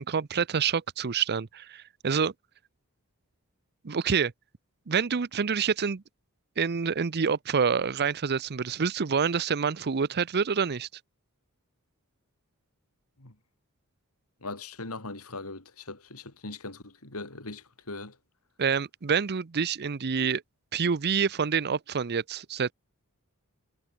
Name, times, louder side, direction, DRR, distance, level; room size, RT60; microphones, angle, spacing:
voice 1, 0.0-2.3 3.8-4.3 4.9-6.0 6.6-10.9 18.6-20.4 20.7-22.7, right 6 dB, 50° right, 0.6 m, -27 dB
voice 2, 14.4-18.2, left 3 dB, 75° left, 4.1 m, -40 dB
head